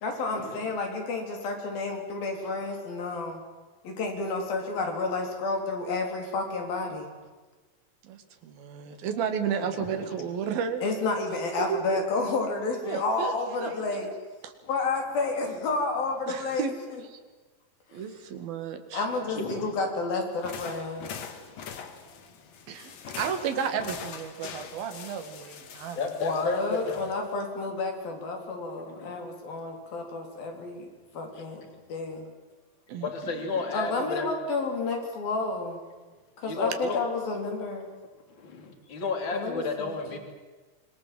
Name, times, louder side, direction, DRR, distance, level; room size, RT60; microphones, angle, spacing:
voice 1, 0.0-3.4 3.8-7.1 10.8-14.1 14.6-16.7 18.9-21.1 26.2-30.9 31.1-31.6 31.9-32.3 33.7-35.8 36.4-37.9 39.3-40.0, left 3 dB, 80° left, 3 dB, 5.6 m, -30 dB
voice 2, 8.0-10.8 11.6-12.0 12.8-13.3 13.6-14.0 14.4-14.5 16.3-16.7 17.1-17.2 17.9-19.1 21.4-21.5 22.7-26.0 32.9-33.5, right 7 dB, 90° right, 8 dB, 3.9 m, -33 dB
voice 3, 9.7-10.2 19.2-19.7 21.4-21.6 25.9-27.0 28.7-29.2 31.3-31.4 33.0-34.3 36.4-37.0 38.3-40.2, left 4 dB, 35° left, 4 dB, 3.7 m, -32 dB
sound 1, 20.3-27.4, left 7 dB, 55° left, 2.7 m, -43 dB
26.0 x 22.5 x 7.8 m, 1.3 s
omnidirectional pair, 4.1 m